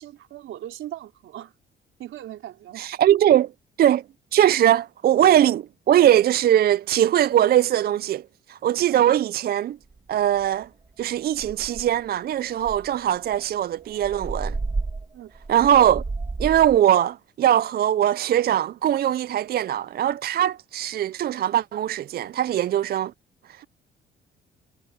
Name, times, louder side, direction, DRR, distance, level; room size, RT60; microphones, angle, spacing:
voice 1, 0.0-1.5 2.0-2.9 8.9-9.0 15.1-15.3, right 13 dB, 80° right, 3.7 m, -39 dB
voice 2, 2.8-3.5 3.8-4.0 4.3-8.2 8.5-9.8 10.1-10.7 11.0-14.6 15.5-16.0 16.4-23.1 23.5-23.6, right 11 dB, 50° right, 0.4 m, -21 dB
sound 1, 9.9-10.0 10.4-10.7 11.0-11.1 11.4-12.1 12.6-16.8, right 3 dB, 20° right, 1.6 m, -32 dB
cardioid pair, 90°, 20 cm